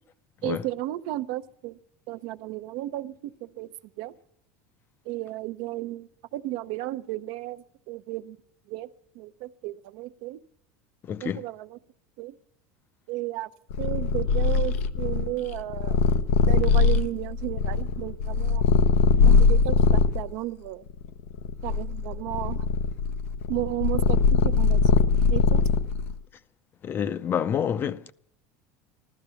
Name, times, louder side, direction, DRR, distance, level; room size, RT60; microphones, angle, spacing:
voice 1, 0.4-1.8 2.1-3.7 4.0-4.1 5.1-8.4 8.7-8.9 9.1-10.4 11.2-11.8 12.2-12.3 13.1-13.5 13.8-16.0 16.5-18.7 19.2-20.8 21.6-22.7 23.5-24.9 25.3-25.6, right 16 dB, 70° right, 0.7 m, -33 dB
voice 2, 11.1-11.4 26.8-28.1, left 8 dB, 30° left, 0.5 m, -28 dB
Purr, 13.7-20.2 20.9-26.1, left 5 dB, 90° left, 0.7 m, -21 dB
15.0 x 12.5 x 6.9 m
supercardioid pair, 130°, 7 cm